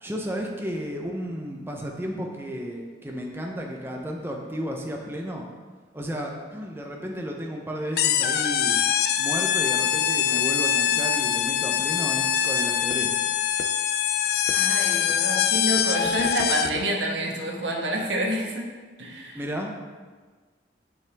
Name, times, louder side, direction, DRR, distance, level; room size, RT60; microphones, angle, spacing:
voice 1, 0.0-5.5 5.9-8.8 9.2-13.2 19.3-19.8, equal, 15° right, 0 dB, 0.7 m, -33 dB
sound 1, 8.0-16.9, left 9 dB, 60° left, 0.4 m, -23 dB
voice 2, 14.5-18.6 19.0-19.4, equal, 90° right, 0 dB, 1.3 m, -28 dB
8.8 x 6.0 x 3.4 m, 1.4 s
head